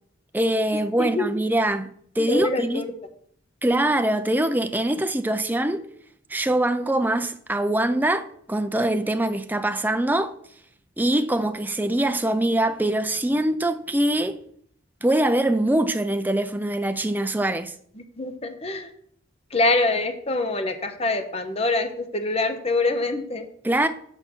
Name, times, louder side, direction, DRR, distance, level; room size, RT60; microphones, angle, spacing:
voice 1, 0.3-1.9 2.2-2.8 3.6-5.8 6.3-10.3 11.0-14.4 15.0-17.7 23.6-23.9, right 1 dB, 10° right, 0.5 m, -23 dB
voice 2, 1.0-1.4 2.2-2.9 18.0-18.9 19.5-23.5, left 2 dB, 30° left, 0.9 m, -25 dB
8.1 x 5.5 x 6.1 m
head